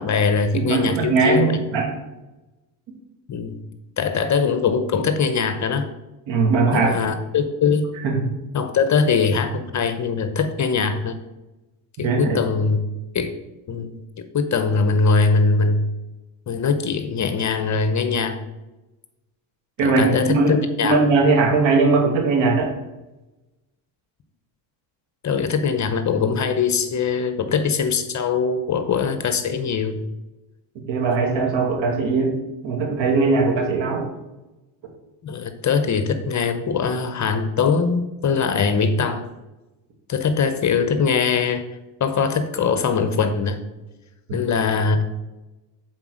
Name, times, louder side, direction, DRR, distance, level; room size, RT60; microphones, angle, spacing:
voice 1, 0.0-1.6 3.3-3.6 4.0-5.9 6.7-7.8 8.5-11.2 12.0-12.8 13.1-13.3 13.7-15.8 16.5-18.4 19.8-21.0 25.2-30.0 35.2-39.3 40.1-41.6 42.0-43.6 44.3-45.0, left 5 dB, 35° left, 9 dB, 0.9 m, -21 dB
voice 2, 0.5-1.9 6.3-7.0 8.0-8.2 12.0-12.4 19.8-22.7 30.9-32.3 32.6-34.1 44.3-44.4, right 4 dB, 70° right, 2 dB, 2.2 m, -19 dB
7.9 x 4.4 x 6.3 m, 1.0 s
cardioid pair, 105°, 49 cm